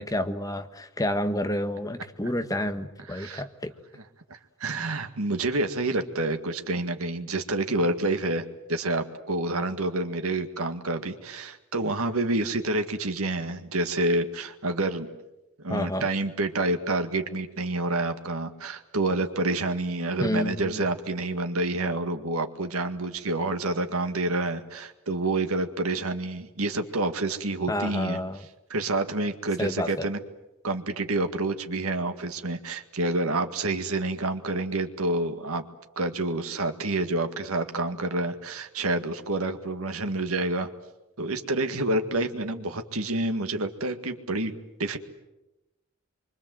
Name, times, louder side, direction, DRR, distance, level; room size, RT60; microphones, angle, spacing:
voice 1, 0.0-3.7 15.7-16.1 20.2-20.8 27.7-28.4 29.6-30.1, left 1 dB, 15° left, 8 dB, 1.3 m, -29 dB
voice 2, 3.1-3.4 3.9-4.0 4.6-15.1 15.6-28.2 28.7-30.2 30.6-35.6 36.0-40.7 41.2-45.0, right 2 dB, 85° right, 6 dB, 1.9 m, -28 dB
26.0 x 24.5 x 7.8 m, 0.97 s
head